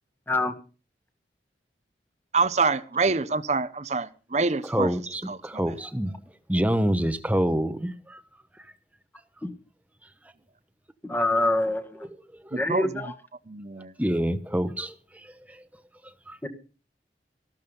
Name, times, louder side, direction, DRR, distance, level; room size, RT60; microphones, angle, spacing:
voice 1, 2.3-4.9 5.3-5.6 12.5-12.9 13.5-13.9, right 4 dB, 40° right, 0.8 m, -26 dB
voice 2, 4.7-6.1 6.5-8.2 12.4-12.6 14.0-14.9 15.5-15.6 16.3-16.4, equal, 10° right, 1.0 m, -26 dB
voice 3, 11.0-12.1 12.6-13.1 16.4-16.5, left 2 dB, 10° left, 1.6 m, -25 dB
14.5 x 12.5 x 5.4 m
head